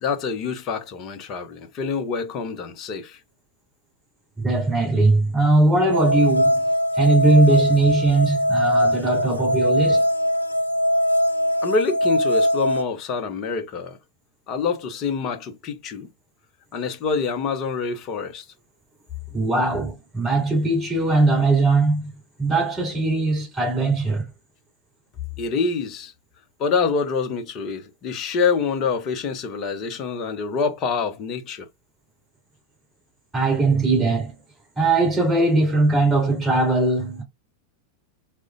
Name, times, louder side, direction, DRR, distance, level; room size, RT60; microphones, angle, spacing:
voice 1, 0.0-3.2 11.6-14.0 14.5-16.1 16.7-18.4 25.4-26.1 26.6-31.7, left 5 dB, 35° left, 0.7 m, -26 dB
voice 2, 4.4-6.6 6.9-10.1 19.3-22.1 22.4-24.3 33.3-34.3 34.8-37.2, right 2 dB, 10° right, 2.6 m, -20 dB
sound 1, 5.9-12.8, equal, 80° left, 0.4 m, -21 dB
4.8 x 2.1 x 2.5 m
figure-of-eight pair, 90°, 0 cm